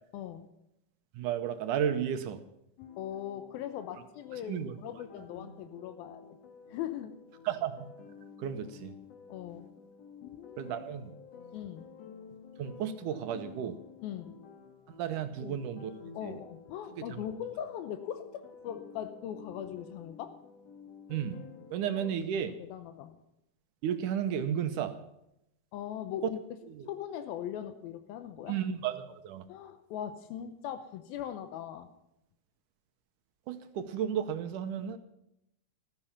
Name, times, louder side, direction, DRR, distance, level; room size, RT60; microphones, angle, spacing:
voice 1, 0.1-0.5 3.0-6.3 6.7-7.2 9.3-9.7 10.2-10.7 11.5-11.9 14.0-14.4 15.4-15.6 16.1-20.4 22.6-23.2 25.7-26.4 26.9-28.6 29.5-31.9, left 10 dB, 85° left, 9 dB, 2.8 m, -40 dB
voice 2, 1.1-2.4 4.5-4.8 7.5-7.9 8.4-9.0 10.6-11.1 12.6-13.8 14.9-15.9 16.2-16.4 17.0-17.2 21.1-21.4 21.7-22.5 23.8-25.0 26.7-26.9 28.5-29.4 33.5-35.0, right 9 dB, 75° right, 9 dB, 2.2 m, -33 dB
sound 1, 2.8-22.1, left 6 dB, 55° left, 2.2 m, -52 dB
15.0 x 13.0 x 5.7 m, 0.81 s
omnidirectional pair, 4.1 m